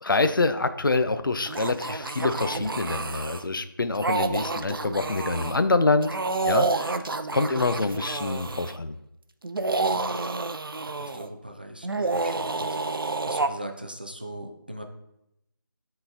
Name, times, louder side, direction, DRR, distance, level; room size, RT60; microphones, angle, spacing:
voice 1, 0.0-6.2 6.5-7.0 7.3-9.0, left 3 dB, 65° left, 10 dB, 0.5 m, -26 dB
sound 1, 1.5-3.4 3.9-5.6 6.0-8.7 9.4-11.3 11.8-13.5, right 3 dB, 75° right, 0.5 m, -29 dB
voice 2, 9.9-10.3 10.8-14.8, right 1 dB, 25° right, 5 dB, 0.4 m, -40 dB
9.4 x 3.9 x 2.8 m, 0.83 s
figure-of-eight pair, 175°, 12 cm